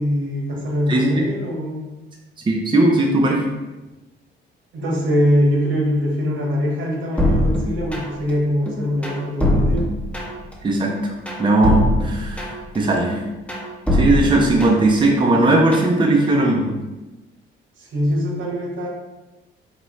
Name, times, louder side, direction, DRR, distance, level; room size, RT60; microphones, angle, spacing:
voice 1, 0.0-1.8 4.7-9.8 17.9-18.9, equal, 75° right, -2 dB, 1.2 m, -22 dB
voice 2, 2.5-3.4 10.6-10.9 11.4-13.2 13.9-16.7, right 2 dB, 25° right, -1 dB, 0.6 m, -18 dB
sound 1, 7.2-8.3 8.7-10.5 10.9-12.8 13.1-15.0 15.3-15.9, left 1 dB, 5° left, 1.0 m, -22 dB
4.0 x 3.0 x 3.1 m, 1.1 s
cardioid pair, 90°, 20 cm